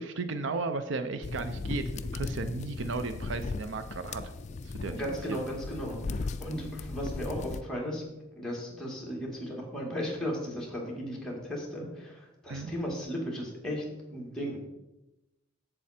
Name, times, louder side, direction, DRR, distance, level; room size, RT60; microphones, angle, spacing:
voice 1, 0.0-4.3 4.6-5.0 5.3-5.4 12.5-12.7, right 3 dB, 65° right, 9 dB, 0.5 m, -35 dB
sound 1, 1.2-7.6, left 3 dB, 35° left, 0.3 m, -37 dB
voice 2, 4.9-8.0 8.4-13.8 14.1-14.7, equal, 5° left, -3 dB, 2.0 m, -36 dB
7.6 x 7.4 x 4.3 m, 0.95 s
head